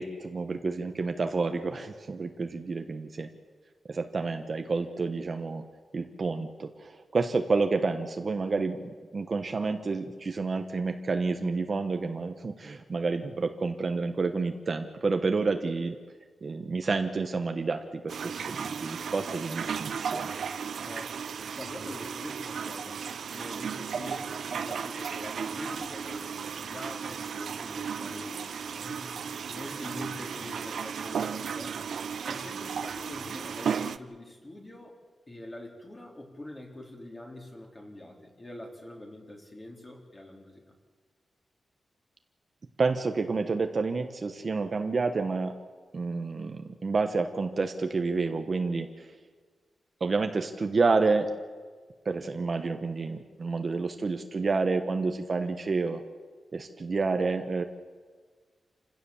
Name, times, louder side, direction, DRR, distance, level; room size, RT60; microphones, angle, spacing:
voice 1, 0.0-3.3 3.9-5.6 5.9-16.0 16.4-20.3 42.8-45.6 45.9-49.1 50.0-51.3 52.0-56.0 56.5-57.6, right 4 dB, 35° right, 6 dB, 1.2 m, -29 dB
sound 1, 18.1-34.0, right 6 dB, 70° right, 0.8 m, -35 dB
voice 2, 20.7-21.2 21.5-23.0 23.3-31.8 32.2-35.0 35.3-40.6, left 1 dB, 20° left, 0 dB, 3.7 m, -44 dB
28.0 x 16.5 x 7.2 m, 1.5 s
wide cardioid pair, 160°, 0 cm